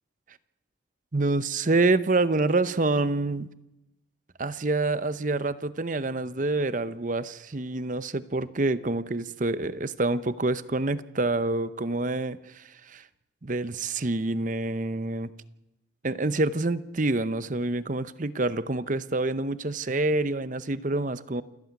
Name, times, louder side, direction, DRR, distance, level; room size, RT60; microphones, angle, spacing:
voice 1, 1.1-3.5 4.4-13.0 13.4-15.3 16.0-21.4, right 2 dB, 40° right, 14 dB, 0.8 m, -27 dB
28.0 x 14.0 x 9.5 m, 0.95 s
head